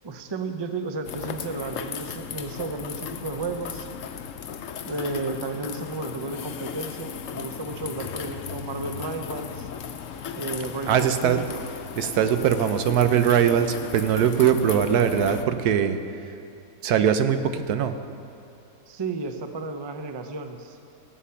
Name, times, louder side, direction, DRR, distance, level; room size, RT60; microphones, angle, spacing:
voice 1, 0.0-3.9 4.8-9.7 10.3-11.5 18.9-20.8, right 3 dB, 35° right, 7 dB, 0.4 m, -33 dB
sound 1, 1.0-15.5, left 7 dB, 65° left, 1.0 m, -36 dB
voice 2, 10.9-11.4 12.0-16.0 16.8-17.9, right 8 dB, 85° right, 9 dB, 1.3 m, -21 dB
17.0 x 8.4 x 5.7 m, 2.7 s
omnidirectional pair, 1.6 m